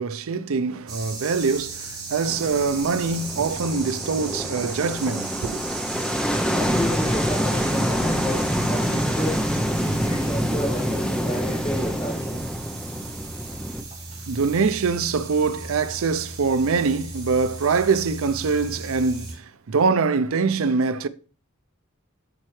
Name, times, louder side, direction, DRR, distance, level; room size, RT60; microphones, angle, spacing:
voice 1, 0.0-5.6 14.1-21.1, right 4 dB, 70° right, 0.5 m, -24 dB
sound 1, 0.9-19.3, right 3 dB, 25° right, 3.5 m, -36 dB
sound 2, 2.3-13.8, equal, 5° left, 0.7 m, -26 dB
voice 2, 6.5-9.4 9.8-12.4, equal, 25° left, 1.9 m, -31 dB
12.0 x 4.3 x 3.2 m
head